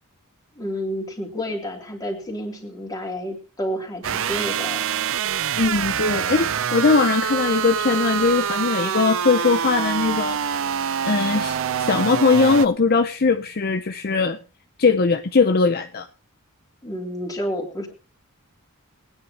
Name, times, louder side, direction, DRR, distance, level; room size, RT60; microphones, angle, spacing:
voice 1, 0.6-4.8 16.8-17.9, equal, 15° left, 3.1 m, -30 dB
sound 1, 4.0-12.7, right 8 dB, 65° right, 0.6 m, -25 dB
voice 2, 5.6-10.7 11.0-14.4 14.8-16.1, left 4 dB, 45° left, 0.7 m, -20 dB
22.5 x 9.8 x 2.9 m
head